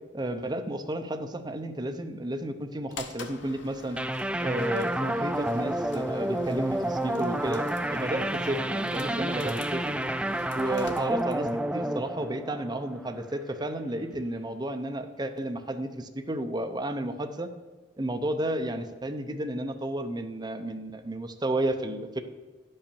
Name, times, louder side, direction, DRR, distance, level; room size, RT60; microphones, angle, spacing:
voice 1, 0.1-4.0 4.4-10.0 10.5-17.5 18.0-22.2, right 1 dB, 25° right, 6 dB, 0.7 m, -32 dB
sound 1, 2.9-11.6, left 4 dB, 75° left, 1.0 m, -47 dB
sound 2, 4.0-13.3, right 1 dB, 5° right, 0.3 m, -30 dB
10.0 x 5.5 x 7.0 m, 1.3 s
head